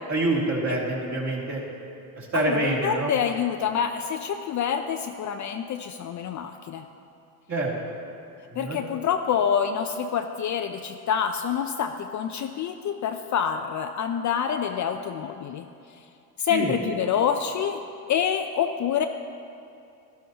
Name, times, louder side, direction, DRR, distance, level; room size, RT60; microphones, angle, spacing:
voice 1, 0.1-1.6 2.2-3.1 7.5-7.7 8.5-8.8 16.5-16.7, right 2 dB, 35° right, -3 dB, 2.6 m, -26 dB
voice 2, 2.3-6.9 8.6-15.6 16.4-17.8 18.1-19.0, left 8 dB, 40° left, 6 dB, 0.5 m, -27 dB
12.0 x 12.0 x 2.8 m, 2.6 s
hypercardioid pair, 75°, 47 cm